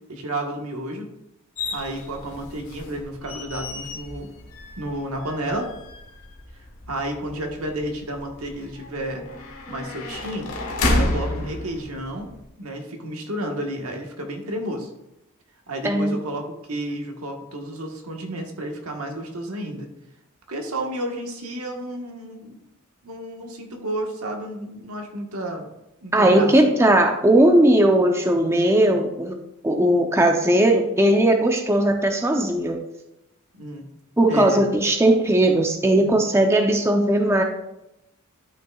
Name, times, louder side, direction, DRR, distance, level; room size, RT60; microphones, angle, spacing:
voice 1, 0.1-1.1 1.7-4.3 4.8-5.7 6.9-9.2 9.7-10.5 10.9-12.3 12.6-14.9 15.7-19.9 20.5-22.6 23.0-25.7 26.0-26.5 33.5-33.9 34.3-34.6 36.0-36.4, right 1 dB, 75° right, 2 dB, 1.3 m, -31 dB
sound 1, 1.6-12.4, left 2 dB, 75° left, 1.2 m, -31 dB
voice 2, 15.8-16.2 26.1-29.4 29.6-32.8 34.2-37.4, right 1 dB, 10° right, 3 dB, 0.6 m, -18 dB
12.0 x 5.8 x 2.3 m, 0.88 s
head